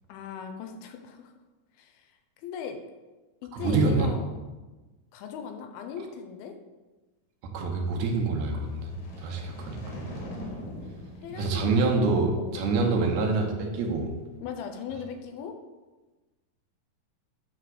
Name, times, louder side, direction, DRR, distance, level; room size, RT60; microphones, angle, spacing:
voice 1, 0.1-1.3 1.8-2.8 3.4-4.3 5.1-6.6 11.2-11.8 12.3-12.7 14.4-15.6, left 7 dB, 90° left, 5 dB, 2.7 m, -38 dB
voice 2, 3.5-4.1 7.4-10.0 11.3-14.1, right 3 dB, 80° right, 1 dB, 2.9 m, -26 dB
sound 1, 8.3-12.5, left 1 dB, 55° left, 2.6 m, -42 dB
9.3 x 3.4 x 6.2 m, 1.2 s
omnidirectional pair, 4.4 m